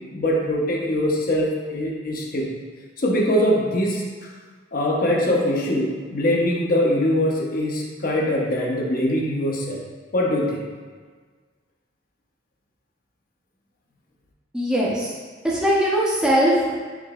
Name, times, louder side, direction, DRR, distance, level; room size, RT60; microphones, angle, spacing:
voice 1, 0.1-2.5 3.0-4.3 4.7-9.8 10.1-10.6, left 1 dB, 50° left, -2 dB, 0.5 m, -22 dB
voice 2, 14.5-15.1 15.4-16.7, equal, 5° right, -6 dB, 0.4 m, -20 dB
4.7 x 2.6 x 2.2 m, 1.5 s
head